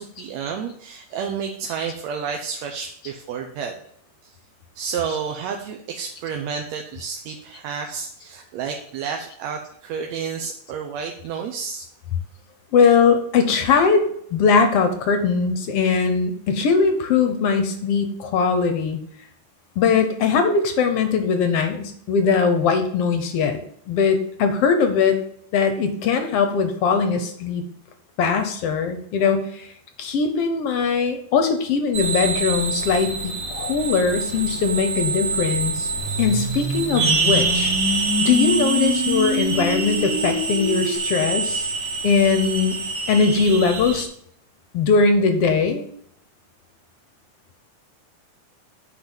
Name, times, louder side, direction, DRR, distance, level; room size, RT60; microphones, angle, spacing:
voice 1, 0.0-3.7 4.2-4.4 4.8-11.9, right 6 dB, 70° right, 3 dB, 1.9 m, -30 dB
voice 2, 12.7-19.0 19.8-23.6 23.9-25.2 25.5-27.6 28.2-29.7 30.0-35.9 36.2-37.7 38.2-41.7 42.0-42.8 43.1-44.1 44.7-45.8, left 5 dB, 70° left, 7 dB, 1.5 m, -20 dB
sound 1, 31.9-44.0, right 4 dB, 55° right, 0.7 m, -26 dB
sound 2, 36.0-41.0, left 1 dB, ahead, 1.3 m, -26 dB
9.3 x 4.4 x 7.2 m, 0.69 s
omnidirectional pair, 3.6 m